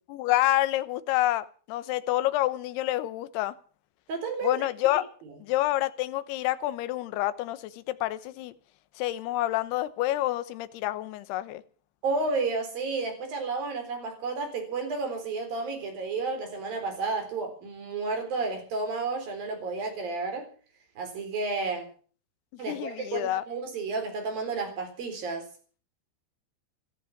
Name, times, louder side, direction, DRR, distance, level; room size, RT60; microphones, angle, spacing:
voice 1, 0.1-3.5 4.4-5.0 5.4-8.5 9.0-11.6 22.7-23.4, left 15 dB, 75° left, 2.6 m, -28 dB
voice 2, 4.1-4.7 12.0-20.5 21.0-21.9 22.6-25.5, right 3 dB, 50° right, 5.4 m, -31 dB
14.0 x 13.5 x 7.3 m
omnidirectional pair, 5.5 m